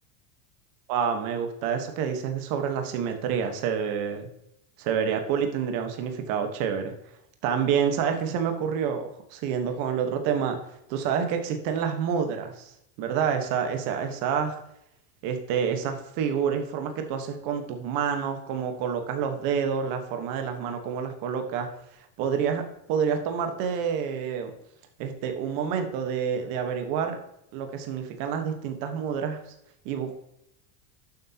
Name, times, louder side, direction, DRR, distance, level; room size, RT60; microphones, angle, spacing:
voice 1, 0.9-4.3 4.8-6.9 7.4-10.6 10.9-12.7 13.0-14.6 15.2-21.7 22.2-22.6 22.9-24.5 25.0-27.2 27.5-29.4 29.8-30.2, right 7 dB, 45° right, 6 dB, 1.3 m, -28 dB
11.5 x 7.8 x 2.9 m, 0.79 s
supercardioid pair, 160°, 48 cm